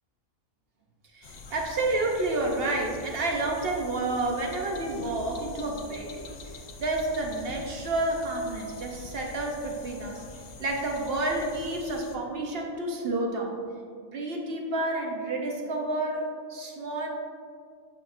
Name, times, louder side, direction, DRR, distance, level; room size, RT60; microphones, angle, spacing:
voice 1, 1.1-6.3 6.8-10.2 10.6-13.5 14.0-17.1, right 2 dB, 55° right, 1 dB, 0.8 m, -30 dB
sound 1, 1.2-12.2, left 3 dB, 80° left, 0.3 m, -45 dB
8.5 x 5.6 x 2.5 m, 2.2 s
omnidirectional pair, 1.5 m